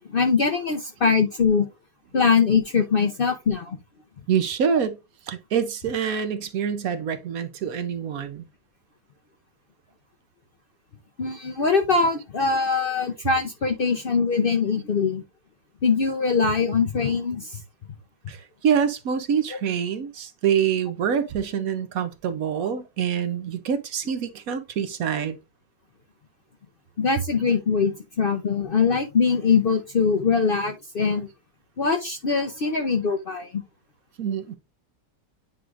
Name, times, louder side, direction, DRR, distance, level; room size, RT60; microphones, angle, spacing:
voice 1, 0.1-1.7 2.1-3.8 11.2-15.2 15.8-17.6 27.0-31.3 31.8-33.6, left 5 dB, 75° left, 0.5 m, -22 dB
voice 2, 4.3-5.0 5.3-8.5 18.3-25.4 34.2-34.6, right 7 dB, 65° right, 1.0 m, -26 dB
9.2 x 4.7 x 2.5 m
omnidirectional pair, 1.9 m